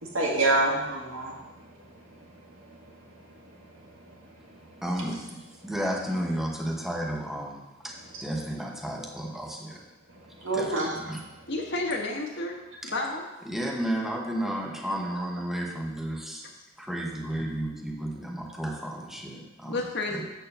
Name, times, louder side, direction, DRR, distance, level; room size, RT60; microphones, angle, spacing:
voice 1, 0.0-4.8 10.1-10.9, right 2 dB, 80° right, -2 dB, 1.9 m, -30 dB
voice 2, 4.8-9.9 10.5-11.2 12.8-12.9 13.4-16.5 16.8-20.2, right 1 dB, ahead, 0 dB, 0.9 m, -33 dB
voice 3, 11.5-12.5 12.9-13.2 19.7-20.2, left 2 dB, 60° left, 1 dB, 1.3 m, -30 dB
7.3 x 4.5 x 6.7 m, 1.1 s
head